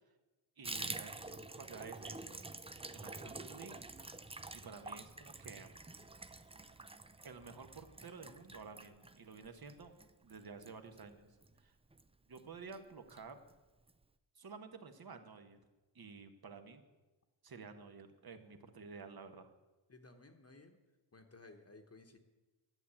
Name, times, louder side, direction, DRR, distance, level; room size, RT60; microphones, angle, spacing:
Water tap faucet / Bathtub (filling or washing), 0.6-11.6 11.9-12.1 12.3-12.4 12.7-13.2 13.5-13.6 13.9-14.0, right 3 dB, 15° right, 0.4 m, -48 dB
voice 1, 0.6-2.5 2.9-3.8 4.6-5.7 7.2-9.9 10.2-11.3 11.6-11.7 12.3-13.4 14.4-15.6 15.9-16.8 17.4-19.5, right 5 dB, 50° right, 7 dB, 1.3 m, -52 dB
voice 2, 19.9-20.8 21.1-22.2, left 3 dB, 30° left, 5 dB, 1.1 m, -58 dB
11.5 x 7.4 x 9.7 m, 1.1 s
wide cardioid pair, 150°, 48 cm